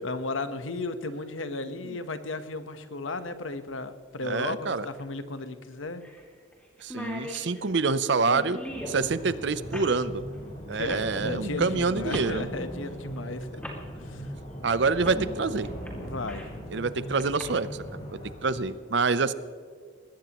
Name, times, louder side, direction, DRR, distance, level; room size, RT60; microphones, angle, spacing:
voice 1, 0.0-6.0 9.0-9.2 10.7-13.6 14.0-14.3 16.0-16.8, left 2 dB, 85° left, 10 dB, 1.1 m, -35 dB
sound 1, 3.1-3.2 4.9-5.0 5.4-5.5 6.0-6.2 6.5-6.6 6.8-9.0 9.7-9.9 10.9-11.1 12.1-12.3 13.2-13.3 13.6-13.8 15.0-15.2 15.6-16.6 17.2-17.4, equal, 5° left, 2.2 m, -39 dB
voice 2, 4.2-4.9 6.8-8.6 8.9-10.2 10.7-12.5 14.6-15.7 16.7-17.7 18.4-19.3, right 4 dB, 65° right, 15 dB, 0.6 m, -26 dB
sound 2, 8.7-18.7, equal, 35° left, 3.9 m, -39 dB
20.5 x 16.5 x 3.0 m, 2.1 s
head